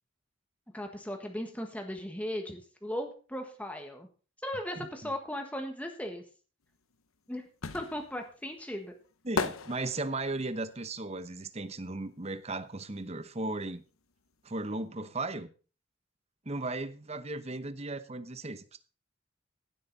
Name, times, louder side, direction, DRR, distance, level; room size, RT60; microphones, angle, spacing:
voice 1, 0.7-4.1 4.4-6.2 7.3-7.4 7.7-8.9, left 1 dB, 5° left, 1.4 m, -37 dB
voice 2, 4.8-5.1 9.2-13.8 14.4-15.5 16.4-18.8, right 2 dB, 30° right, 0.9 m, -36 dB
sound 1, 6.7-12.6 12.9-14.5 14.7-14.8, left 4 dB, 80° left, 0.9 m, -38 dB
16.0 x 7.9 x 4.1 m
head